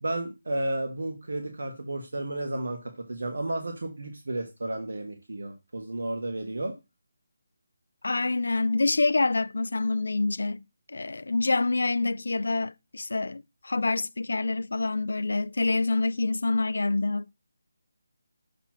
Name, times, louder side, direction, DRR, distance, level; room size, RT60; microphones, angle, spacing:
voice 1, 0.0-6.7, right 1 dB, 70° right, 1.3 m, -32 dB
voice 2, 8.0-10.6 10.9-17.3, left 3 dB, 70° left, 0.4 m, -26 dB
6.9 x 2.9 x 5.8 m
hypercardioid pair, 180°, 0 cm